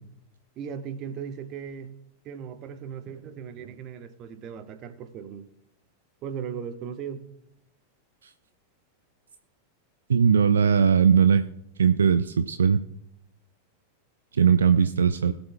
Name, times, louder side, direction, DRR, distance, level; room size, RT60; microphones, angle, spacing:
voice 1, 0.6-1.9 2.2-5.5 6.2-7.2, right 7 dB, 35° right, 1.0 m, -37 dB
voice 2, 10.1-11.4 11.8-12.8 14.3-15.3, right 7 dB, 70° right, 0.4 m, -19 dB
21.0 x 7.1 x 2.2 m
figure-of-eight pair, 90°, 0 cm